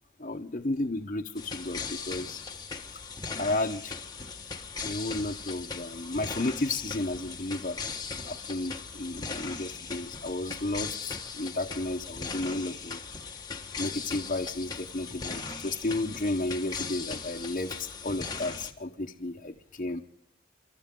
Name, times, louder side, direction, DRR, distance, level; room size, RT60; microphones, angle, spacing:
voice 1, 0.2-2.4 3.4-3.9 4.8-7.9 8.2-13.0 13.8-20.0, left 2 dB, 45° left, 1 dB, 0.9 m, -33 dB
sound 1, 1.3-18.7, left 5 dB, 20° left, 1.4 m, -39 dB
29.0 x 13.0 x 3.7 m, 0.71 s
head